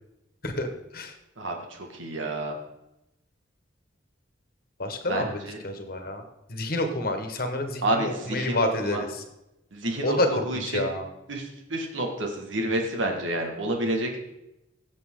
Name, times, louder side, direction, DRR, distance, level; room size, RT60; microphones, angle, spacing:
voice 1, 1.4-2.6 5.1-5.6 7.8-9.0 9.7-10.9 11.3-14.3, right 1 dB, 90° right, 2 dB, 2.0 m, -29 dB
voice 2, 4.8-6.2 6.5-9.2 10.0-11.0, left 1 dB, 50° left, 5 dB, 1.4 m, -28 dB
17.0 x 7.5 x 3.8 m, 0.89 s
head